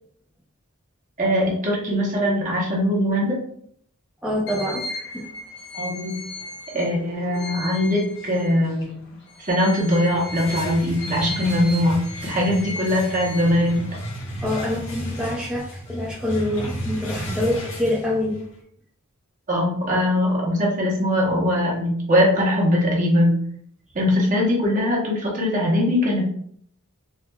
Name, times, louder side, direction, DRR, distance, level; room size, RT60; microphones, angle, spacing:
voice 1, 1.2-3.4 5.8-6.2 6.7-9.0 9.4-13.8 19.5-23.3 23.9-26.3, left 1 dB, 35° right, -3 dB, 1.0 m, -21 dB
voice 2, 4.2-5.2 14.4-18.4, left 1 dB, 5° right, -7 dB, 0.6 m, -26 dB
sound 1, 4.5-8.8 9.3-14.1, left 2 dB, 55° left, 0.9 m, -36 dB
sound 2, 9.9-18.6, equal, 70° left, 1.3 m, -33 dB
4.6 x 2.5 x 2.2 m, 0.65 s
head